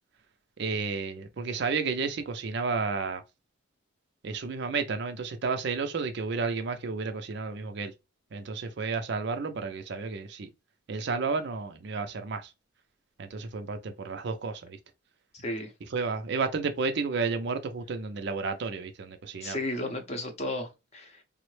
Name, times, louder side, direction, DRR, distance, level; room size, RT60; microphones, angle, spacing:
voice 1, 0.6-3.2 4.2-7.9 8.3-10.5 10.9-12.5 13.2-14.8 15.9-19.6, right 4 dB, 55° right, 0.4 m, -32 dB
voice 2, 15.3-15.7 19.4-21.2, left 1 dB, 30° left, 0.6 m, -34 dB
3.6 x 2.0 x 3.1 m
head